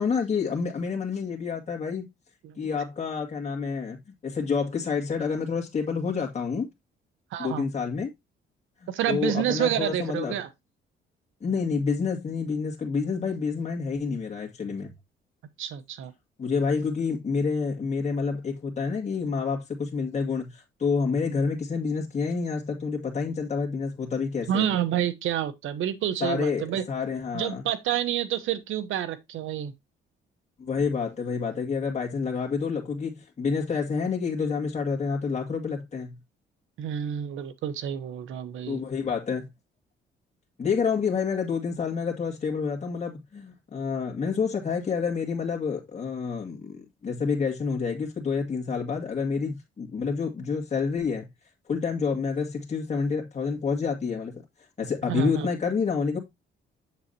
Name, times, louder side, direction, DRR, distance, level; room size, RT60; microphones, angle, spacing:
voice 1, 0.0-2.1 2.6-4.0 4.2-6.7 7.4-8.1 8.8-10.3 11.4-14.9 16.4-24.7 26.2-27.6 30.6-36.2 38.7-39.5 40.6-51.3 51.7-54.4 54.8-56.2, left 5 dB, 35° left, 2.2 m, -28 dB
voice 2, 7.3-7.6 8.9-10.5 15.6-16.1 24.5-26.8 27.3-29.7 36.8-38.8 55.1-55.5, right 10 dB, 80° right, 1.1 m, -28 dB
7.4 x 7.1 x 2.8 m
cardioid pair, 90°, 20 cm